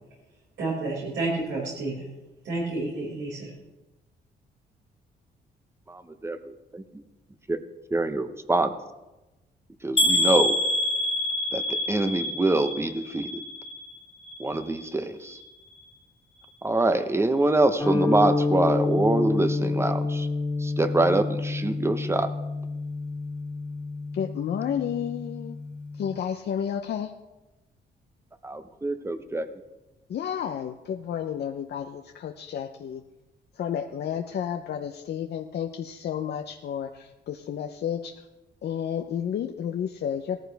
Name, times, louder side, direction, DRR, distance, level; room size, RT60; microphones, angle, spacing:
voice 1, 0.6-2.1 2.4-3.5, right 2 dB, 75° right, -6 dB, 5.9 m, -30 dB
voice 2, 5.9-6.8 7.5-7.6 7.9-8.7 9.8-10.6 11.5-13.4 14.4-15.4 16.6-20.3 20.6-22.3 28.4-29.5, right 2 dB, 15° right, 10 dB, 1.0 m, -25 dB
sound 1, 10.0-13.9 14.2-14.9 15.3-15.4 15.8-15.9, left 1 dB, 30° left, 1.5 m, -26 dB
sound 2, 17.8-26.2, left 3 dB, 10° left, 2.1 m, -29 dB
voice 3, 24.1-25.6 25.9-27.1 30.1-33.0 33.5-38.3 38.6-40.4, left 8 dB, 65° left, 5 dB, 0.8 m, -31 dB
17.5 x 14.0 x 3.5 m, 1.0 s
cardioid pair, 105°, 19 cm